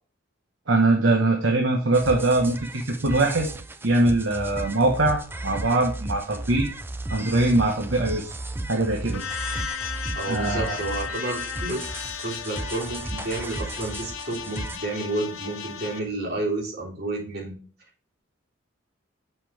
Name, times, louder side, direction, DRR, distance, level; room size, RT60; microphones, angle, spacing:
voice 1, 0.7-3.5 3.8-6.7 7.1-8.3 8.7-9.2 9.5-9.6 10.3-10.8, right 2 dB, 65° right, 1 dB, 1.1 m, -22 dB
sound 1, 1.9-14.8, right 2 dB, 10° right, 0.4 m, -35 dB
sound 2, 9.1-16.0, left 8 dB, 90° left, 0.8 m, -35 dB
voice 2, 10.1-11.8 12.2-17.6, right 2 dB, 50° right, -5 dB, 3.6 m, -30 dB
7.8 x 5.5 x 3.4 m, 0.40 s
head